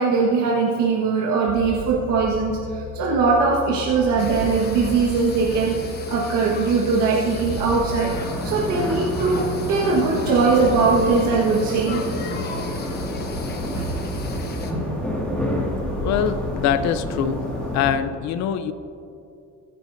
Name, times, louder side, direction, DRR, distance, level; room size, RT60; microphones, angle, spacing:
voice 1, 0.0-8.1 8.4-12.0 12.7-12.9, right 4 dB, 70° right, -4 dB, 1.6 m, -21 dB
sound 1, 1.5-15.7, equal, 40° right, 1.4 m, -35 dB
sound 2, 4.2-14.7, left 4 dB, 30° left, 1.1 m, -37 dB
sound 3, 8.1-18.0, left 1 dB, 5° left, 2.1 m, -29 dB
voice 2, 16.0-17.4 17.7-18.7, left 8 dB, 60° left, 12 dB, 0.7 m, -23 dB
22.0 x 10.0 x 2.7 m, 2.7 s
cardioid pair, 150°, 31 cm